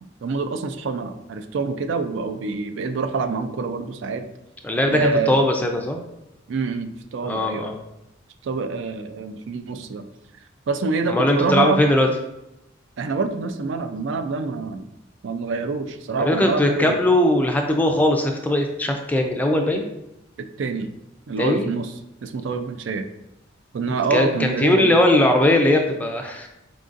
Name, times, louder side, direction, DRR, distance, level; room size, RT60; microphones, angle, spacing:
voice 1, 0.0-4.2 4.9-5.4 6.5-7.7 8.4-10.1 10.7-11.8 13.0-14.9 15.2-17.0 20.4-20.9 21.3-21.9 22.2-23.1 23.7-24.9, right 4 dB, 65° right, 8 dB, 0.4 m, -26 dB
voice 2, 4.6-6.0 7.2-7.8 11.1-12.1 16.2-19.9 21.4-21.7 24.1-26.5, left 1 dB, 10° left, 2 dB, 0.4 m, -19 dB
4.6 x 3.7 x 2.5 m, 0.88 s
head